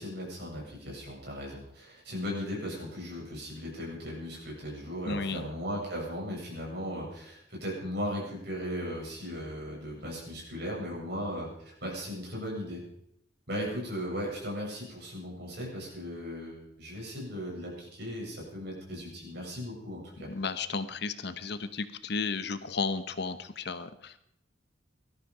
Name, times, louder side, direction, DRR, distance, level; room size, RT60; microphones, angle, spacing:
voice 1, 0.0-12.8 13.5-20.3, equal, 55° right, -2 dB, 7.6 m, -37 dB
voice 2, 5.1-5.4 20.3-24.2, left 4 dB, 55° left, 12 dB, 0.9 m, -33 dB
19.0 x 13.5 x 4.9 m, 0.74 s
head